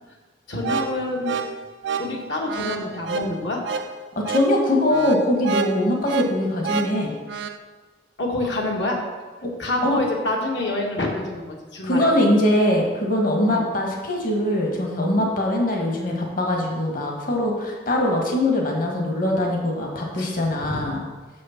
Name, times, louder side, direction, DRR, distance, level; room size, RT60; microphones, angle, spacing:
voice 1, 0.5-1.4 2.0-3.6 8.2-9.0 9.6-12.1 13.5-13.6 20.2-20.3 20.6-20.8, left 1 dB, 75° left, -1 dB, 1.7 m, -27 dB
sound 1, 0.6-7.6, right 5 dB, 85° right, 0.5 m, -29 dB
voice 2, 4.3-7.1 9.4-9.5 9.8-10.0 11.8-21.0, left 1 dB, 55° left, 0 dB, 1.5 m, -22 dB
6.6 x 6.4 x 5.8 m, 1.3 s
head